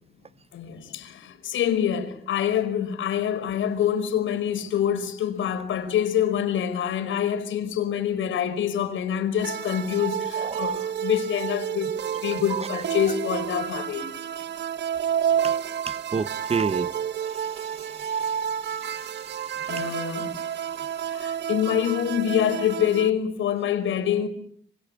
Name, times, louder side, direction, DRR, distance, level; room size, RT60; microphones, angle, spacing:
voice 1, 0.5-14.0 18.1-18.3 19.7-20.4 21.1-24.3, left 9 dB, 75° left, 5.0 m, -26 dB
sound 1, 9.4-23.1, right 9 dB, 60° right, 1.2 m, -30 dB
voice 2, 10.4-10.8 12.5-12.7 15.4-15.5 15.9-16.9 17.6-17.7 18.0-18.1 19.6-19.9, right 5 dB, 30° right, 1.3 m, -30 dB
27.0 x 25.5 x 8.7 m
cardioid pair, 90°, 20 cm